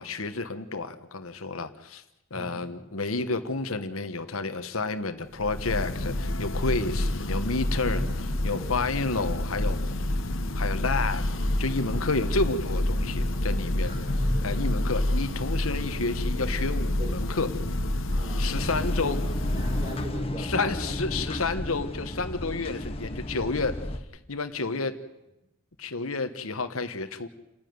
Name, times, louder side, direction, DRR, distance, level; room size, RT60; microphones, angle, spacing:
voice 1, 0.0-2.0 2.3-8.0 8.4-9.9 10.5-13.9 14.4-17.5 18.4-19.2 20.4-23.8 24.3-24.9 25.8-27.3, left 3 dB, 85° left, 9 dB, 1.4 m, -30 dB
voice 2, 2.3-2.9 7.8-8.9 13.8-14.7 17.0-17.1 18.2-21.3 24.5-24.8, equal, 20° right, 1 dB, 5.1 m, -39 dB
Church bell, 5.3-20.3, left 1 dB, 65° left, 1.3 m, -28 dB
sound 1, 18.5-24.0, left 1 dB, 30° left, 1.3 m, -34 dB
29.0 x 10.5 x 9.6 m, 0.93 s
head